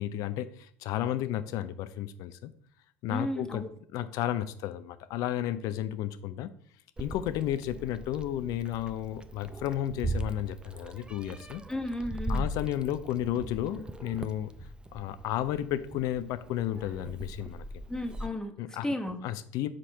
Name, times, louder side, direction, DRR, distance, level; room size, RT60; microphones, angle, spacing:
voice 1, 0.0-2.5 3.0-3.6 3.9-6.5 7.0-11.6 12.3-14.5 14.9-17.6 18.6-18.9 19.2-19.7, left 12 dB, 60° left, 13 dB, 0.6 m, -32 dB
voice 2, 3.1-3.7 11.7-12.5 17.9-18.5 18.8-19.2, left 1 dB, 10° left, 5 dB, 1.2 m, -33 dB
Meow, 7.0-18.3, right 1 dB, 15° right, 0.5 m, -39 dB
5.2 x 4.2 x 5.4 m, 0.62 s
hypercardioid pair, 70°, 7 cm